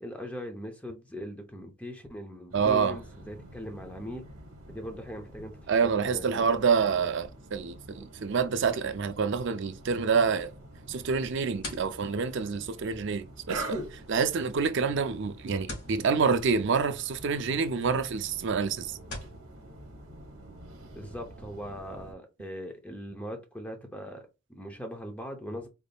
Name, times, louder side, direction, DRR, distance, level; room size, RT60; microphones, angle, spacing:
voice 1, 0.0-4.2 4.7-5.5 5.8-6.5 20.9-25.7, equal, 5° left, 0.6 m, -40 dB
voice 2, 2.5-3.0 5.7-10.5 10.9-19.0, right 5 dB, 55° right, 0.4 m, -27 dB
sound 1, 2.5-22.1, right 1 dB, 75° right, 1.0 m, -45 dB
sound 2, 11.1-19.4, left 2 dB, 85° left, 1.9 m, -48 dB
3.9 x 3.5 x 2.3 m
head